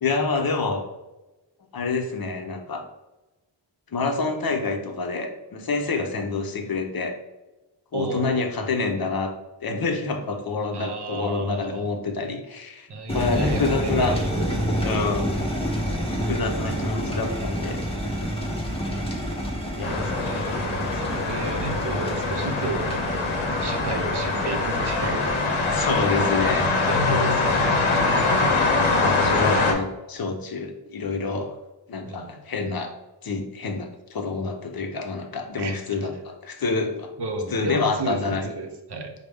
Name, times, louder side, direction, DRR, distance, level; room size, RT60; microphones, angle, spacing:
voice 1, 0.0-0.8 1.7-2.8 3.9-7.1 7.9-9.3 9.6-12.9 13.1-14.2 14.8-15.4 16.3-17.8 19.8-20.1 25.7-26.7 29.0-31.5 31.9-32.9 33.2-37.1 37.5-38.5, left 4 dB, 50° left, 4 dB, 0.7 m, -27 dB
voice 2, 7.9-8.5 10.7-11.9 12.9-15.2 19.8-23.3 23.6-26.1 26.9-28.2 32.1-32.3 35.6-35.8 37.2-38.2 38.4-39.1, right 3 dB, 55° right, 4 dB, 0.7 m, -33 dB
sound 1, 13.1-28.0, equal, 10° left, 0.8 m, -29 dB
sound 2, 19.8-29.7, left 3 dB, 85° left, 0.7 m, -23 dB
4.8 x 2.1 x 3.4 m, 1.0 s
wide cardioid pair, 80°, 47 cm